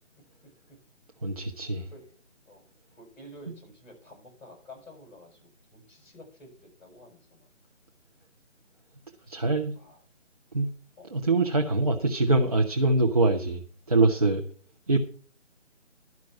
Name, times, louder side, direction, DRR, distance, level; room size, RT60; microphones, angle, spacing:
voice 1, 1.2-1.9 9.3-9.7 10.5-10.7 11.1-14.4 14.9-15.0, right 2 dB, 30° right, 0.8 m, -24 dB
voice 2, 2.9-7.5 9.8-10.0 11.0-11.2, left 1 dB, 35° left, 6.8 m, -50 dB
12.0 x 6.0 x 7.2 m
figure-of-eight pair, 155°, 38 cm